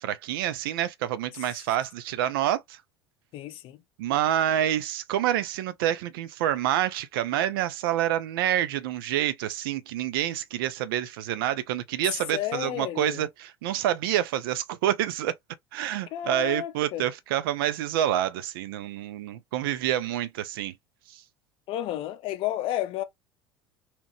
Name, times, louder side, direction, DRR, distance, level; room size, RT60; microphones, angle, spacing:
voice 1, 0.0-2.8 4.0-15.3 15.7-20.7 21.1-21.2, right 12 dB, 60° right, 0.5 m, -27 dB
voice 2, 3.3-3.8 12.3-13.3 16.1-17.1 21.7-23.0, left 13 dB, 45° left, 0.5 m, -32 dB
2.9 x 2.1 x 2.9 m
figure-of-eight pair, 70°, 13 cm